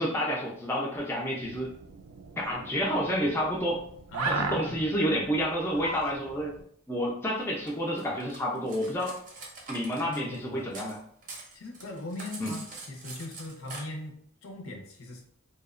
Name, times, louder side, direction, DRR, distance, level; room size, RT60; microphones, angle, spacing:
voice 1, 0.0-1.7 2.4-3.8 4.2-6.5 6.9-9.2 9.7-11.0 12.4-12.5, equal, 10° left, -3 dB, 0.3 m, -29 dB
sound 1, 1.4-6.6, right 4 dB, 90° right, 0.3 m, -38 dB
voice 2, 4.1-4.8 10.1-10.7 11.3-15.2, left 2 dB, 75° left, 2 dB, 0.6 m, -39 dB
Cutlery silverware, 7.7-11.0 11.2-13.8, right 3 dB, 40° right, 0.5 m, -44 dB
2.7 x 2.0 x 2.4 m, 0.64 s
head